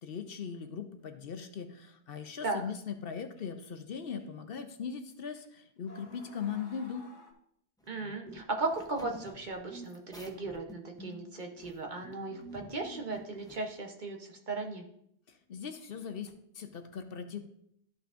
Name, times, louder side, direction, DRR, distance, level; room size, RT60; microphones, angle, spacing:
voice 1, 0.0-7.1 15.3-17.4, left 7 dB, 60° left, 7 dB, 0.9 m, -40 dB
sound 1, 2.4-2.5 3.4-3.7 4.2-4.3 5.4-5.5 5.9-7.3, left 2 dB, 45° left, 1.3 m, -54 dB
sound 2, 7.8-13.6, right 1 dB, 5° left, 0.6 m, -50 dB
voice 2, 7.9-14.8, right 3 dB, 45° right, 2 dB, 1.1 m, -36 dB
13.0 x 5.7 x 2.5 m, 0.72 s
omnidirectional pair, 1.1 m